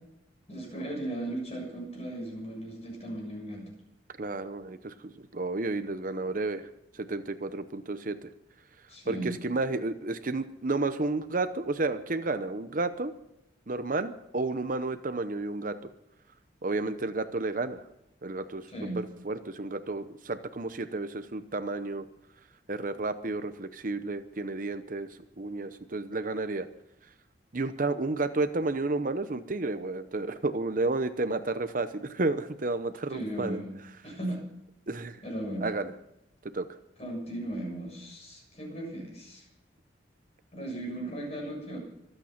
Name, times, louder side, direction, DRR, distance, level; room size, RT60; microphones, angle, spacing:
voice 1, 0.5-3.6 8.9-9.4 18.7-19.0 33.1-33.7 34.0-34.4 35.2-35.7 37.0-39.5 40.5-41.8, right 1 dB, 35° left, 0 dB, 7.0 m, -36 dB
voice 2, 4.2-6.7 6.9-8.3 9.1-13.1 13.7-15.9 16.6-17.8 18.2-18.7 19.0-22.1 22.7-26.7 27.5-33.6 34.9-35.2 35.6-35.9 36.5-36.7, right 2 dB, 45° right, 10 dB, 0.8 m, -31 dB
25.5 x 9.0 x 5.9 m, 0.84 s
head